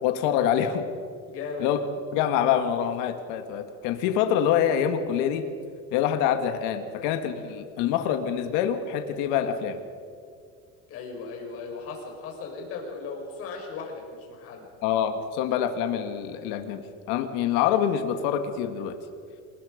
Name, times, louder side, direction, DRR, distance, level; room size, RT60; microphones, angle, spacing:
voice 1, 0.0-0.9 1.6-1.8 2.1-5.5 5.9-9.8 14.8-16.8 17.1-19.0, left 9 dB, 75° left, 7 dB, 2.0 m, -25 dB
voice 2, 1.3-1.7 10.9-14.7, left 4 dB, 50° left, 0 dB, 5.7 m, -37 dB
27.0 x 20.0 x 5.2 m, 2.3 s
cardioid pair, 170°, 31 cm